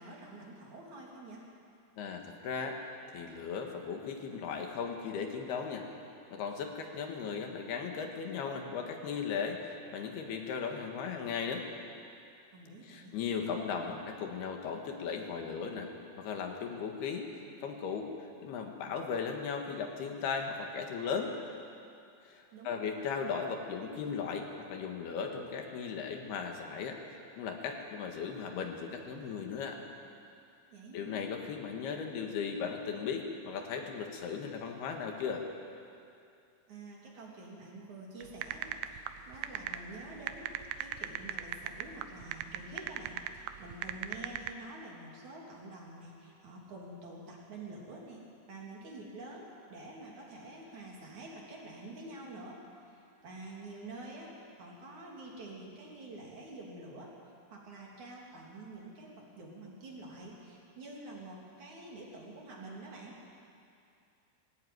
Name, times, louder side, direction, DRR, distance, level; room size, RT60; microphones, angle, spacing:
voice 1, 0.0-1.4 12.5-13.2 22.5-22.9 30.7-31.1 36.7-48.2 48.5-57.2 57.5-63.2, right 2 dB, 50° right, -3 dB, 4.2 m, -48 dB
voice 2, 2.0-2.8 3.1-5.8 6.3-11.6 12.9-15.9 16.2-17.3 17.6-18.1 18.4-21.3 22.3-27.0 27.4-29.8 30.9-35.4, left 6 dB, 75° left, 3 dB, 3.6 m, -37 dB
sound 1, 38.2-44.5, right 11 dB, 85° right, 2.8 m, -38 dB
20.0 x 16.5 x 9.4 m, 2.5 s
omnidirectional pair, 4.7 m